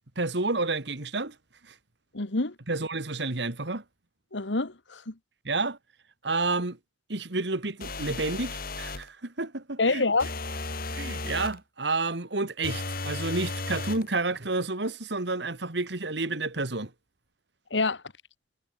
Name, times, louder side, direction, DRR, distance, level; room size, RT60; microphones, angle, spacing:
voice 1, 0.2-1.4 1.7-1.8 2.7-3.8 5.4-5.8 6.2-6.8 7.1-10.3 10.9-16.9, right 3 dB, 70° right, 2.1 m, -30 dB
voice 2, 2.1-2.5 4.3-5.1 9.8-10.3 17.7-18.0, left 3 dB, 90° left, 1.7 m, -26 dB
sound 1, 7.8-9.1 10.2-11.6 12.6-14.1, left 3 dB, 55° left, 5.7 m, -34 dB
head